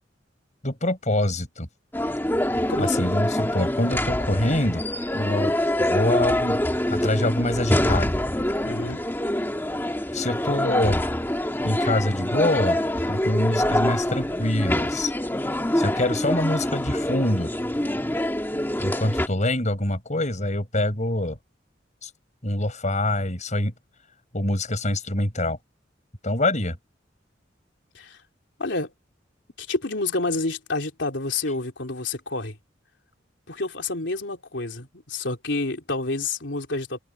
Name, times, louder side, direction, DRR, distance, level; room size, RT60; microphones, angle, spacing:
voice 1, 0.6-1.7 2.8-4.8 5.1-6.6 6.9-8.1 10.1-11.1 11.6-15.1 15.8-17.5 18.8-21.4 22.0-22.1 22.4-23.7 24.3-25.6 26.2-26.8, left 1 dB, 40° left, 7.0 m, -25 dB
sound 1, 1.9-19.3, left 1 dB, 10° left, 1.7 m, -25 dB
voice 2, 2.7-3.1 8.6-9.0 27.9-28.2 28.6-28.9 29.6-32.6 33.5-37.0, left 3 dB, 75° left, 3.5 m, -29 dB
head